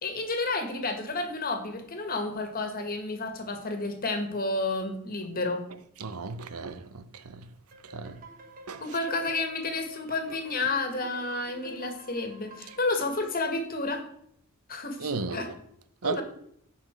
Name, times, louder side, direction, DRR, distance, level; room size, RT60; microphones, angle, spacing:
voice 1, 0.0-5.6 8.8-14.0 14.7-15.5 16.0-16.2, left 2 dB, 40° left, 1.7 m, -31 dB
voice 2, 6.0-7.5 7.8-8.2 8.7-8.8 12.7-12.8 15.0-15.5 16.0-16.2, right 4 dB, 80° right, 0.8 m, -35 dB
sound 1, 7.7-13.2, right 2 dB, 40° right, 1.1 m, -48 dB
15.0 x 5.8 x 4.5 m
head